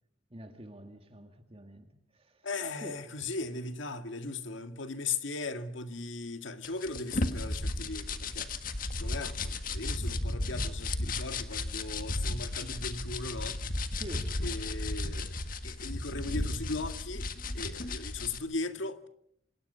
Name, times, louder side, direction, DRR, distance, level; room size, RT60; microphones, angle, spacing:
voice 1, 0.3-2.5 2.8-3.0 13.9-14.3, equal, 30° right, 1.9 m, -47 dB
voice 2, 2.4-13.6 14.4-15.4 15.6-19.1, left 3 dB, 80° left, 1.9 m, -38 dB
sound 1, 6.6-18.4, left 2 dB, 45° left, 1.7 m, -34 dB
27.0 x 27.0 x 5.6 m
head